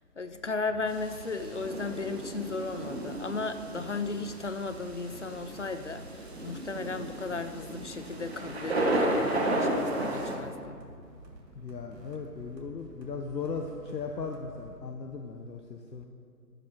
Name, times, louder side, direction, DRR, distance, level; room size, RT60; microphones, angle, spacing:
voice 1, 0.2-6.1 6.4-10.8, left 3 dB, 45° left, 10 dB, 0.6 m, -35 dB
sound 1, 0.7-14.8, right 1 dB, 80° right, 2.3 m, -50 dB
sound 2, 0.9-10.4, right 1 dB, 40° right, 1.4 m, -33 dB
voice 2, 11.5-16.1, left 5 dB, 85° left, 3 dB, 1.1 m, -37 dB
13.5 x 9.7 x 4.6 m, 2.3 s
hypercardioid pair, 180°, 48 cm